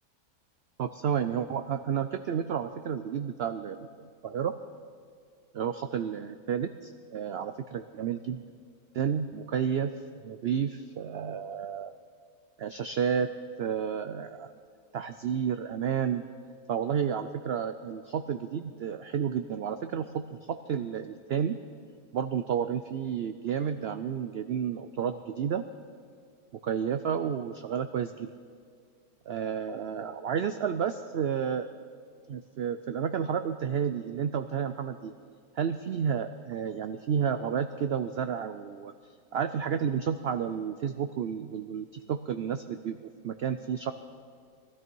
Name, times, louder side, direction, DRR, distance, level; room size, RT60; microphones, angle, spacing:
voice 1, 0.8-4.6 5.5-8.4 8.9-9.9 10.2-11.9 12.6-13.3 13.6-14.5 14.9-16.2 16.7-21.5 22.1-25.6 26.6-28.3 29.3-31.7 32.3-35.1 35.5-38.9 39.3-43.9, right 8 dB, 80° right, 10 dB, 0.5 m, -31 dB
20.0 x 13.0 x 4.6 m, 2.2 s
omnidirectional pair, 1.6 m